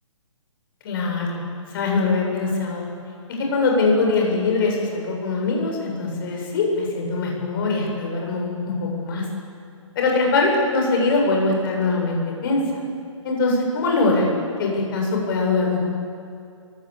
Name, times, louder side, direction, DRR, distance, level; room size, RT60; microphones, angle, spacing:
voice 1, 0.8-1.4 1.7-2.9 3.5-9.2 9.9-12.8 13.2-14.3 14.6-15.9, left 3 dB, 40° left, 0 dB, 7.9 m, -22 dB
28.5 x 24.0 x 8.8 m, 2.5 s
hypercardioid pair, 145°, 16 cm